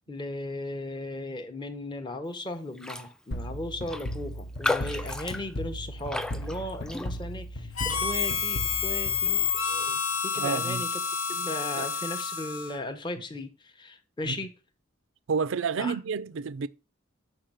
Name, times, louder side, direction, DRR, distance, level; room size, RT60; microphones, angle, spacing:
voice 1, 0.1-11.0 11.3-14.5 15.8-16.0, left 2 dB, 20° left, 0.7 m, -37 dB
Raindrop, 2.8-3.1 3.4-3.5 3.9-7.4 7.9-8.2, left 2 dB, 5° left, 0.3 m, -34 dB
sound 1, 3.3-9.9, equal, 55° left, 0.7 m, -37 dB
Harmonica, 7.8-12.8, left 6 dB, 85° left, 1.0 m, -29 dB
voice 2, 10.4-10.8 11.8-11.9 14.2-14.4 15.3-16.7, right 5 dB, 65° right, 0.5 m, -29 dB
6.5 x 4.8 x 5.9 m
head